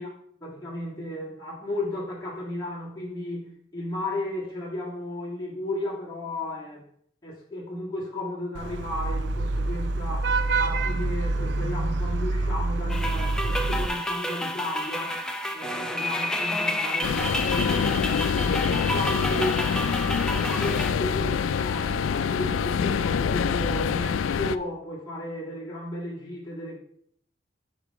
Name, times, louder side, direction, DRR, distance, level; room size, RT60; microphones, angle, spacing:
voice 1, 0.4-6.8 7.2-15.2 15.5-18.0 18.6-19.7 20.1-26.8, left 1 dB, 20° left, -6 dB, 1.6 m, -34 dB
Vehicle horn car horn honking / Traffic noise roadway noise, 8.5-13.9, right 2 dB, 65° right, 0.5 m, -26 dB
sound 1, 12.9-20.9, left 1 dB, 5° left, 0.4 m, -30 dB
sound 2, 17.0-24.6, left 6 dB, 90° left, 0.3 m, -25 dB
5.7 x 5.2 x 4.6 m, 0.63 s
head